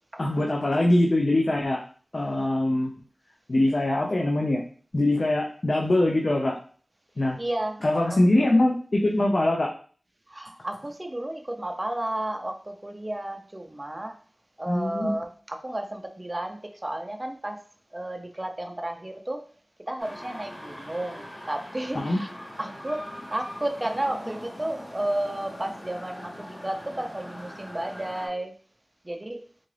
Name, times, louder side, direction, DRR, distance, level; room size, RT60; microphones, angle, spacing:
voice 1, 0.2-1.8 2.1-2.9 3.5-4.6 4.9-6.6 7.2-7.4 7.8-9.7 14.7-15.2 21.9-22.2, left 1 dB, 55° left, 0 dB, 0.5 m, -23 dB
voice 2, 7.4-8.2 10.3-14.2 14.6-17.6 17.9-19.4 19.9-22.3 22.6-23.0 23.3-28.5 29.0-29.4, right 1 dB, 30° right, 4 dB, 0.6 m, -32 dB
sound 1, 20.0-28.3, equal, 25° left, 1.4 m, -41 dB
3.8 x 2.4 x 3.2 m, 0.42 s
wide cardioid pair, 60°, 0 cm